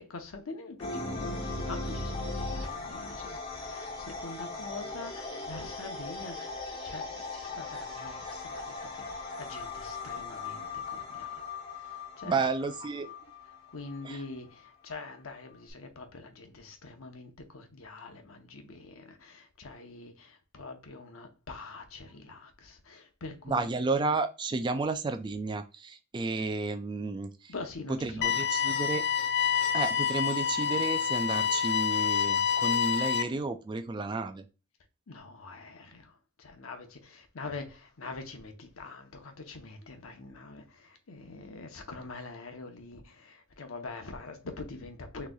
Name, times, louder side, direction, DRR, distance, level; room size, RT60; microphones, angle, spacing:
voice 1, 0.0-12.5 13.7-23.7 27.5-28.8 35.1-45.3, left 3 dB, 85° left, 0.9 m, -45 dB
sound 1, 0.8-14.2, left 3 dB, 30° left, 1.6 m, -38 dB
voice 2, 12.2-13.1 14.0-14.2 23.5-27.5 27.9-29.0 29.7-34.5, right 3 dB, 20° right, 0.3 m, -32 dB
sound 2, 28.2-33.2, left 8 dB, 55° left, 0.4 m, -27 dB
6.2 x 3.2 x 2.3 m
head